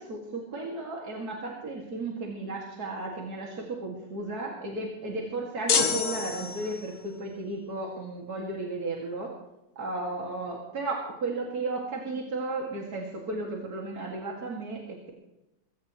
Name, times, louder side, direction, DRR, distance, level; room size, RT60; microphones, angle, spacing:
voice 1, 0.0-9.3 9.8-15.1, right 2 dB, 75° right, -1 dB, 2.9 m, -34 dB
sound 1, 5.7-7.0, left 6 dB, 65° left, 1.7 m, -27 dB
22.5 x 17.0 x 3.2 m, 0.90 s
omnidirectional pair, 1.7 m